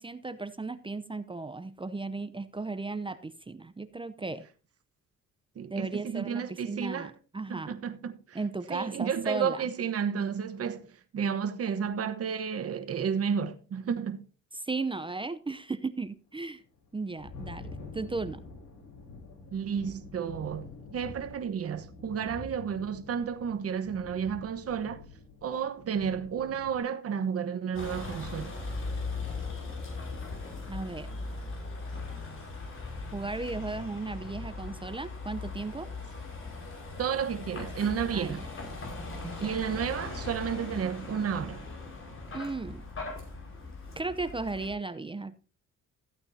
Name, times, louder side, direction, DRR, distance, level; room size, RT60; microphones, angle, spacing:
voice 1, 0.0-4.5 5.7-7.7 8.3-9.7 14.5-16.6 16.9-18.4 30.7-31.1 33.1-35.9 38.1-38.5 39.2-39.6 42.3-42.8 44.0-45.4, right 3 dB, 15° right, 0.7 m, -35 dB
voice 2, 5.6-7.1 7.5-8.4 8.7-14.2 19.5-25.0 25.4-28.6 37.0-38.4 39.4-41.7, right 7 dB, 50° right, 1.2 m, -32 dB
Thunder, 16.6-26.8, left 3 dB, 75° left, 4.0 m, -47 dB
Vehicle, 27.7-44.7, left 3 dB, 45° left, 5.5 m, -39 dB
14.5 x 8.7 x 2.8 m
cardioid pair, 90°, 30 cm